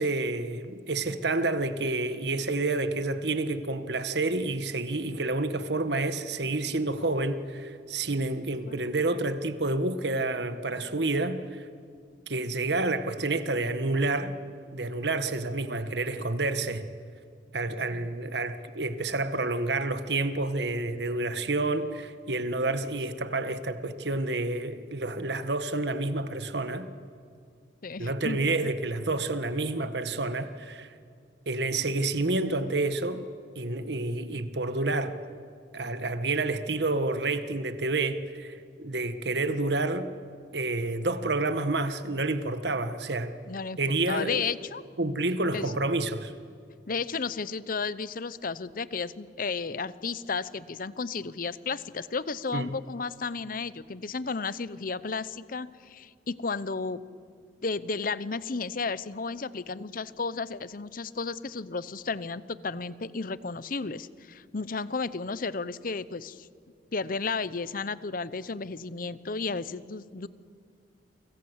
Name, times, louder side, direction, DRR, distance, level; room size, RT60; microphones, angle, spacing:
voice 1, 0.0-11.6 12.3-14.3 14.7-16.9 17.5-26.9 28.0-30.9 31.5-33.3 33.5-35.2 35.7-40.1 40.5-43.4 43.8-44.4 45.0-46.3 52.5-52.7, right 2 dB, 65° right, 1.5 m, -29 dB
voice 2, 27.8-28.7 43.5-44.8 45.5-45.7 46.9-57.0 57.6-66.5 66.9-70.3, left 4 dB, 50° left, 0.8 m, -33 dB
29.5 x 24.5 x 8.1 m
head